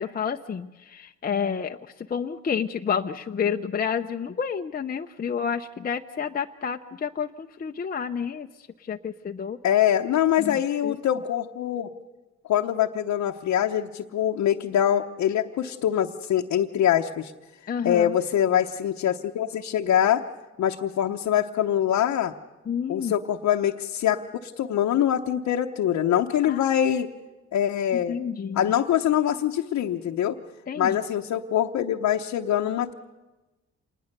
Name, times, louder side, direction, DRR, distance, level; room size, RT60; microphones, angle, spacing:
voice 1, 0.0-9.6 10.4-10.9 17.7-18.2 22.7-23.1 26.4-26.6 27.9-28.7 30.7-31.0, left 7 dB, 30° left, 4 dB, 0.6 m, -30 dB
voice 2, 9.6-11.9 12.5-17.3 17.8-20.2 20.6-22.3 22.9-27.1 27.5-28.1 28.6-30.4 30.8-32.9, left 10 dB, 65° left, 2 dB, 0.9 m, -24 dB
26.5 x 20.0 x 6.6 m, 1.1 s
cardioid pair, 90°, 30 cm